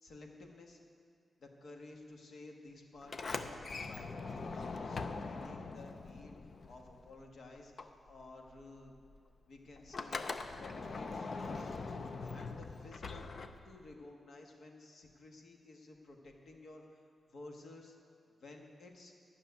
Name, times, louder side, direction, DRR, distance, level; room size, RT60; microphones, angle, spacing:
voice 1, 0.0-0.8 1.4-7.7 8.1-8.9 9.5-10.2 10.5-11.8 12.3-13.3 13.6-17.9 18.4-19.1, left 2 dB, 65° left, 1 dB, 1.5 m, -54 dB
Sliding door, 3.0-7.3 7.5-13.9, left 4 dB, 45° left, 0.5 m, -42 dB
12.0 x 6.3 x 9.3 m, 2.3 s
wide cardioid pair, 160°, 0 cm